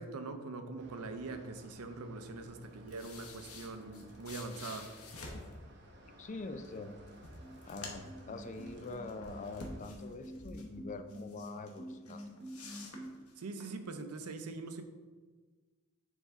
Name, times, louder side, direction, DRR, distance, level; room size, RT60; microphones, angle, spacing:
voice 1, 0.0-4.9 13.4-14.8, right 3 dB, 80° right, 8 dB, 0.6 m, -43 dB
sound 1, 0.8-9.8, equal, 50° right, 1.0 m, -57 dB
sound 2, 2.6-5.6 6.6-6.7 7.1-8.2 8.5-10.7 11.1-11.8 12.1-13.7, left 3 dB, 80° left, 1.0 m, -49 dB
voice 2, 6.2-6.9 7.7-12.3, left 3 dB, 35° left, 9 dB, 0.4 m, -44 dB
sound 3, 7.0-13.1, right 1 dB, 25° right, 1.1 m, -48 dB
7.1 x 4.1 x 3.6 m, 1.4 s
head